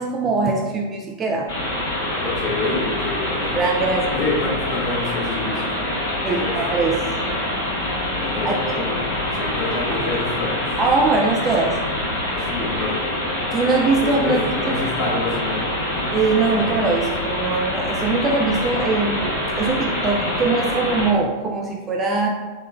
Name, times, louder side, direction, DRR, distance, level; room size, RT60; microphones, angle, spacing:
voice 1, 0.0-1.5 3.5-4.1 6.2-7.1 8.4-8.6 9.9-10.2 10.8-11.8 13.5-14.4 14.7-14.9 16.1-22.3, right 3 dB, 25° right, 0 dB, 0.3 m, -22 dB
sound 1, 1.5-21.1, left 1 dB, 55° left, 1.2 m, -25 dB
voice 2, 2.2-3.6 3.9-5.8 6.2-6.5 8.2-9.0 9.3-10.7 12.3-13.1 14.0-16.1, left 3 dB, 25° left, -6 dB, 1.2 m, -28 dB
3.6 x 2.2 x 3.4 m, 1.4 s
figure-of-eight pair, 90°, 0 cm